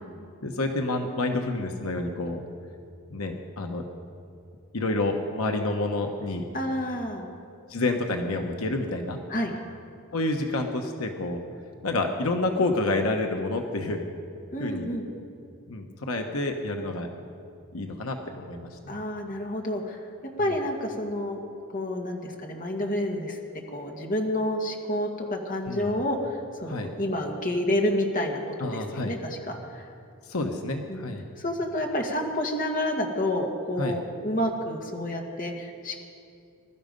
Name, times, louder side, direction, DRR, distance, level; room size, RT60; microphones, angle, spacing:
voice 1, 0.4-2.4 3.1-3.8 4.7-6.4 7.7-9.2 10.1-11.4 11.8-14.0 14.6-14.9 15.7-17.1 17.7-19.0 25.7-26.0 26.7-26.9 28.6-29.1 30.3-31.2 33.8-34.0, left 2 dB, 80° left, 4 dB, 1.2 m, -29 dB
voice 2, 6.5-7.3 9.3-9.5 14.5-15.1 18.9-20.0 20.4-21.4 21.7-23.4 23.7-29.8 30.9-31.1 31.4-36.0, left 1 dB, 40° left, 1 dB, 1.8 m, -29 dB
21.5 x 12.5 x 5.3 m, 2.5 s
head